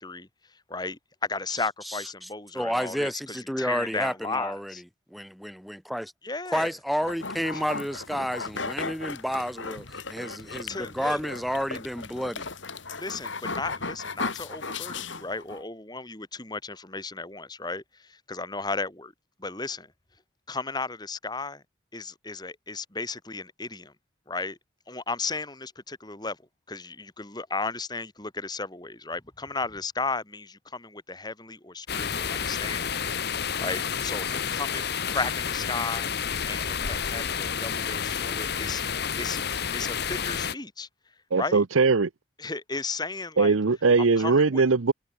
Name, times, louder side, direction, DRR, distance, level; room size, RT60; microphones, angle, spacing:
voice 1, 0.0-4.8 6.2-6.7 7.5-7.6 10.7-11.2 11.7-11.8 12.9-19.1 19.4-19.9 20.5-21.6 21.9-23.9 24.3-24.6 24.9-26.4 26.7-38.8 39.2-39.4 39.7-40.9 41.4-41.6 42.4-43.6 44.0-44.6, left 3 dB, 20° left, 2.4 m, -35 dB
voice 2, 1.9-2.3 2.5-4.7 5.1-6.1 6.5-12.5, equal, ahead, 1.4 m, -31 dB
sound 1, 7.0-15.6, left 4 dB, 70° left, 3.8 m, -36 dB
sound 2, 31.9-40.5, left 7 dB, 50° left, 1.0 m, -30 dB
voice 3, 41.3-42.1 43.4-44.9, right 4 dB, 85° right, 0.8 m, -21 dB
head